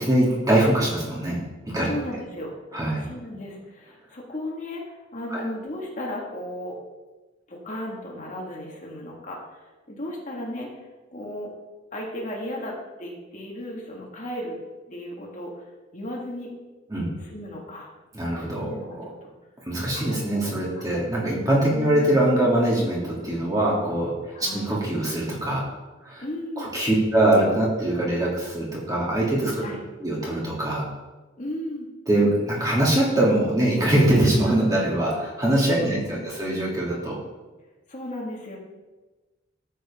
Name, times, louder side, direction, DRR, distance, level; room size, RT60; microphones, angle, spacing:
voice 1, 0.0-1.4 1.6-1.9 2.7-3.0 5.3-5.4 16.9-17.1 18.1-18.7 19.6-25.7 26.0-26.2 26.6-29.6 30.0-30.9 32.1-37.2, right 1 dB, 20° right, -5 dB, 2.8 m, -23 dB
voice 2, 1.8-2.6 3.0-6.8 7.5-9.5 9.9-10.7 11.1-11.5 11.9-14.6 14.9-16.5 17.2-17.9 18.6-19.3 19.9-20.4 20.7-20.9 21.7-22.2 24.3-24.7 26.2-26.7 29.6-29.8 31.4-31.9 35.7-36.3 37.9-38.6, left 1 dB, 40° left, -2 dB, 2.0 m, -35 dB
12.5 x 8.0 x 3.7 m, 1.2 s
head